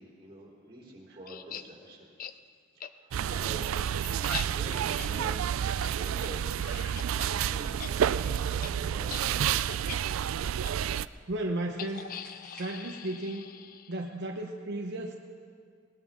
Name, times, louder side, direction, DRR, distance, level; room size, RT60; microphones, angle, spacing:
voice 1, 0.0-2.1 2.9-4.1 4.5-6.6 7.2-9.6, right 1 dB, 30° right, -3 dB, 3.6 m, -47 dB
sound 1, 1.3-1.6 2.2-2.3 2.8-2.9 3.3-7.3 7.6-7.9 8.2-8.3 8.6-8.7 9.1-9.2 9.7-10.0 10.6-10.7 11.8-14.1, left 9 dB, 45° left, 0.4 m, -42 dB
sound 2, 3.1-11.1, right 9 dB, 85° right, 0.3 m, -30 dB
voice 2, 11.3-12.1 12.5-13.5 13.9-15.1, right 1 dB, 60° right, 1 dB, 0.8 m, -34 dB
sound 3, 11.9-13.4, right 1 dB, 5° left, 2.7 m, -55 dB
20.5 x 19.0 x 3.7 m, 2.2 s
head